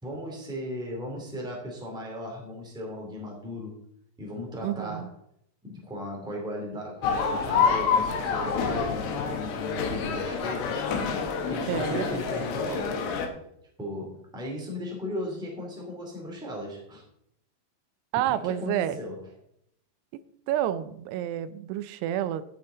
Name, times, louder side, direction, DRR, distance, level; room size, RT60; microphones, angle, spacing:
voice 1, 0.0-3.8 4.2-5.1 5.6-10.8 11.2-13.1 13.8-17.0 18.4-19.3, left 1 dB, ahead, -2 dB, 1.8 m, -36 dB
voice 2, 4.6-5.1 11.7-12.2 18.1-19.0 20.1-20.2 20.5-22.4, right 12 dB, 90° right, 14 dB, 2.7 m, -29 dB
sound 1, 7.0-13.3, left 6 dB, 80° left, 3.2 m, -27 dB
13.5 x 7.4 x 3.9 m, 0.74 s
omnidirectional pair, 4.7 m